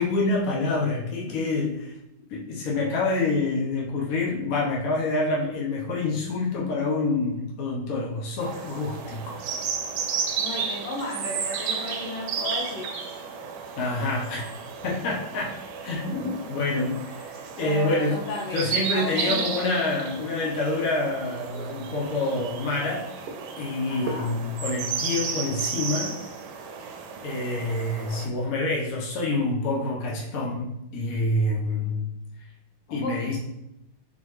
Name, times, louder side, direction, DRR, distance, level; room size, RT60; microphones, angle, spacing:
voice 1, 0.0-1.9 2.3-9.4 13.8-14.4 14.8-15.5 15.8-18.2 18.5-23.1 23.6-26.1 26.8-26.9 27.2-32.1 32.9-33.4, left 2 dB, 60° left, -3 dB, 1.0 m, -27 dB
sound 1, 8.4-28.3, right 6 dB, 80° right, 1.4 m, -33 dB
voice 2, 10.4-13.2 17.6-19.7 23.9-24.3 32.9-33.4, left 1 dB, 85° left, -2 dB, 1.6 m, -34 dB
4.0 x 3.8 x 3.1 m, 0.85 s
omnidirectional pair, 2.2 m